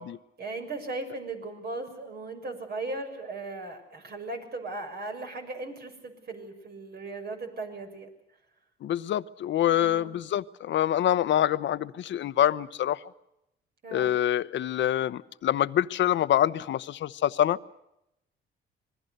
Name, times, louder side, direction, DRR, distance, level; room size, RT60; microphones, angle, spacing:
voice 1, 0.4-8.1 9.7-10.1 13.8-14.1, right 2 dB, 50° right, 5 dB, 6.5 m, -37 dB
voice 2, 8.8-13.0 13.9-17.6, left 11 dB, 70° left, 15 dB, 0.9 m, -26 dB
26.5 x 21.5 x 6.7 m, 0.86 s
cardioid pair, 90°, 20 cm